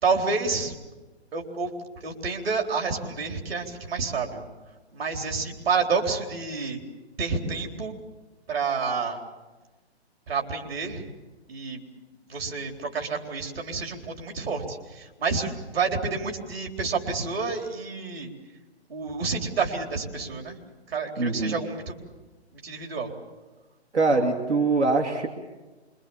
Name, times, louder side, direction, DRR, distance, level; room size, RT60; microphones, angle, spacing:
voice 1, 0.0-0.7 1.3-1.7 2.0-4.4 4.9-6.8 7.2-7.9 8.5-9.2 10.3-11.0 11.5-11.8 12.3-14.8 15.2-18.3 18.9-20.6 20.9-21.9 22.6-23.1, right 4 dB, 60° right, 3 dB, 4.1 m, -29 dB
voice 2, 21.2-21.6 23.9-25.3, right 3 dB, 90° right, 3 dB, 2.8 m, -23 dB
26.5 x 23.0 x 7.2 m, 1.2 s
hypercardioid pair, 155°, 33 cm